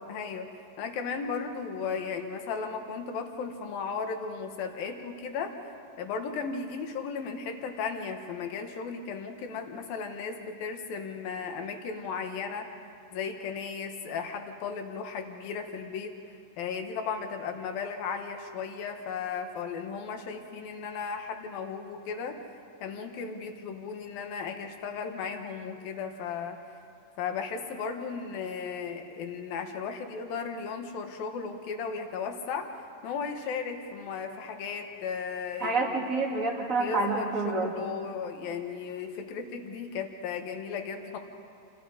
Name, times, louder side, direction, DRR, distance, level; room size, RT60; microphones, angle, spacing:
voice 1, 0.1-0.5 0.8-5.5 6.0-12.7 13.1-16.1 16.6-22.4 22.8-26.6 27.2-32.7 33.0-35.8 36.8-41.2, left 5 dB, 65° left, 5 dB, 2.6 m, -35 dB
voice 2, 35.6-37.7, right 3 dB, 30° right, 0 dB, 1.4 m, -28 dB
29.0 x 27.5 x 5.1 m, 2.7 s
omnidirectional pair, 5.6 m